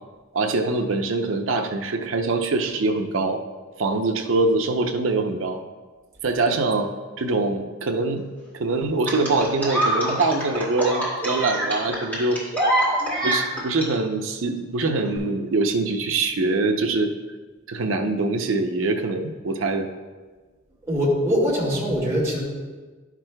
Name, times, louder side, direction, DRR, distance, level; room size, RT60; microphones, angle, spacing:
voice 1, 0.3-3.4 3.8-5.6 6.2-8.3 8.5-12.4 13.2-17.1 17.7-19.9, right 3 dB, 90° right, 5 dB, 0.6 m, -24 dB
sound 1, 9.1-13.9 15.0-15.2, right 1 dB, 10° left, 2.1 m, -24 dB
voice 2, 20.8-22.4, equal, 15° right, -6 dB, 1.9 m, -22 dB
11.0 x 6.0 x 2.2 m, 1.3 s
head